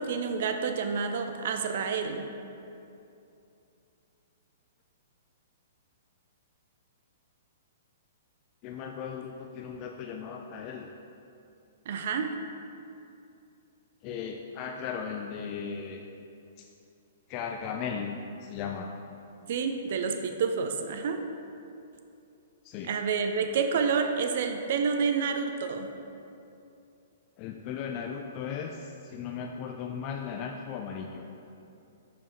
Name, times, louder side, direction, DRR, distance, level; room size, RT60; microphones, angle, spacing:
voice 1, 0.0-2.3 11.9-12.4 19.5-21.2 22.9-25.9, right 5 dB, 55° right, 6 dB, 0.4 m, -29 dB
voice 2, 8.6-10.9 14.0-16.0 16.6-16.7 17.3-18.9 22.6-22.9 27.4-31.3, left 6 dB, 35° left, 3 dB, 0.3 m, -37 dB
6.9 x 4.9 x 2.9 m, 2.7 s
figure-of-eight pair, 115°, 0 cm